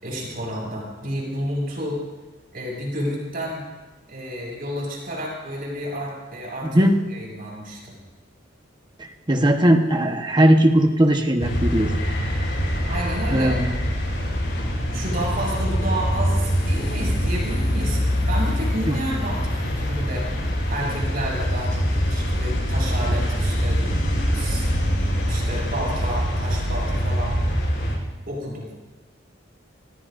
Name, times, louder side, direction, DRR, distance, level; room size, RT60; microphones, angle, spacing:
voice 1, 0.0-2.0 2.5-3.6 4.1-6.8 7.1-7.8 12.9-13.6 14.9-20.3 20.7-24.0 24.3-24.7 25.3-27.4 28.3-28.7, equal, 50° right, -2 dB, 6.7 m, -30 dB
voice 2, 9.0-11.9 13.3-13.7 18.9-19.0, right 1 dB, 25° right, 4 dB, 1.2 m, -18 dB
sound 1, 11.4-28.0, equal, 65° left, 6.9 m, -24 dB
26.0 x 19.5 x 2.6 m, 1.2 s
head